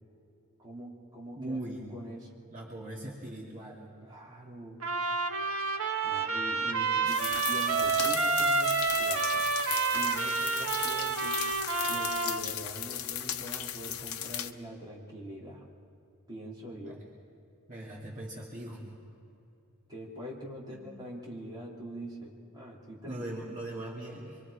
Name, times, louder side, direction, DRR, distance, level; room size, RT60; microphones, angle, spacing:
voice 1, 0.6-1.6 1.9-2.3 4.0-4.8 6.0-9.4 9.9-11.4 11.8-15.7 16.3-17.0 19.9-23.2, right 1 dB, 20° right, -5 dB, 3.4 m, -43 dB
voice 2, 1.3-1.9 2.5-3.9 6.6-7.1 16.8-16.9 17.7-18.8 20.7-20.8 23.1-24.4, right 1 dB, 35° right, -4 dB, 2.7 m, -40 dB
Trumpet, 4.8-12.4, right 4 dB, 75° right, 1.6 m, -29 dB
sound 1, 7.1-14.5, left 10 dB, 75° left, 0.8 m, -36 dB
26.0 x 23.5 x 5.0 m, 2.7 s
head